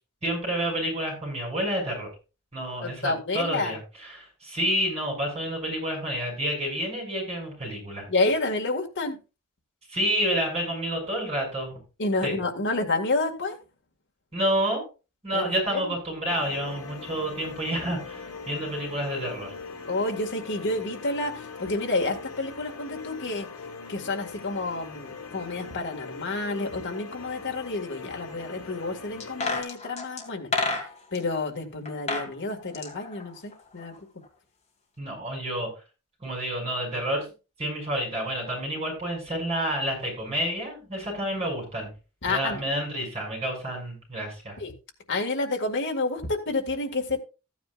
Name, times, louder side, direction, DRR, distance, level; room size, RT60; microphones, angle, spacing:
voice 1, 0.2-2.1 2.5-8.1 9.9-11.8 12.2-12.3 14.3-14.8 15.2-19.5 35.0-35.7 36.2-37.2 37.6-41.9 42.3-44.5, equal, 30° right, -1 dB, 6.6 m, -29 dB
voice 2, 2.8-3.8 8.1-9.2 12.0-13.6 15.3-15.9 19.9-23.5 23.9-30.5 31.1-33.9 42.2-42.6 44.6-44.7 45.1-47.2, left 2 dB, 55° left, 2 dB, 2.0 m, -29 dB
sound 1, 16.3-29.6, left 4 dB, 70° left, 2.4 m, -41 dB
sound 2, 29.2-31.2 31.9-32.3 32.6-34.0 34.2-34.3, left 3 dB, 30° left, 2.1 m, -30 dB
14.5 x 9.4 x 2.5 m, 0.31 s
head